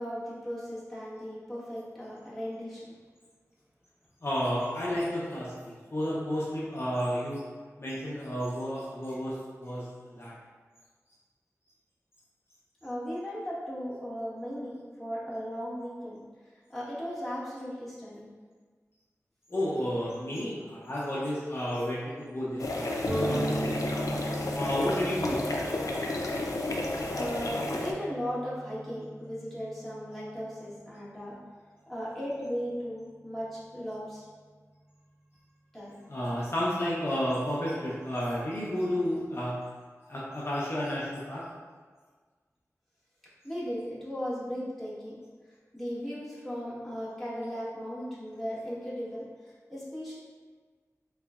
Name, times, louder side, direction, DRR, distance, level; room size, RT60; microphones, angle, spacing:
voice 1, 0.0-3.0 4.6-4.7 12.8-16.2 16.7-18.3 27.1-31.4 31.9-34.2 35.7-35.9 43.4-45.1 45.7-49.3 49.7-50.2, equal, ahead, -10 dB, 1.3 m, -36 dB
voice 2, 4.2-7.4 7.8-10.3 19.5-23.9 24.5-25.4 36.1-39.6 40.1-41.4, equal, 50° left, -7 dB, 0.7 m, -32 dB
sound 1, 22.6-27.9, left 2 dB, 90° left, 0.4 m, -32 dB
sound 2, 23.0-30.7, right 1 dB, 45° right, 0.9 m, -37 dB
3.8 x 3.1 x 2.4 m, 1.5 s
wide cardioid pair, 60°, 6 cm